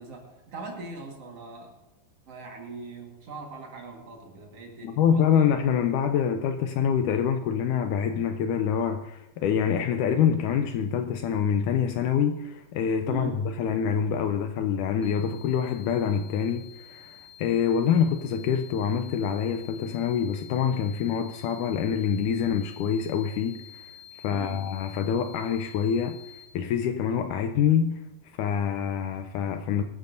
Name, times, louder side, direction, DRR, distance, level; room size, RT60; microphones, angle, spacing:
voice 1, 0.0-1.7 2.3-5.5 13.1-13.5 24.2-24.7, right 4 dB, 50° right, 1 dB, 2.4 m, -41 dB
voice 2, 4.8-23.9 24.2-28.0 28.4-29.8, left 8 dB, 80° left, 7 dB, 1.9 m, -26 dB
sound 1, 15.0-26.4, left 10 dB, 15° right, 4.8 m, -49 dB
24.0 x 12.0 x 2.7 m, 0.94 s
omnidirectional pair, 4.1 m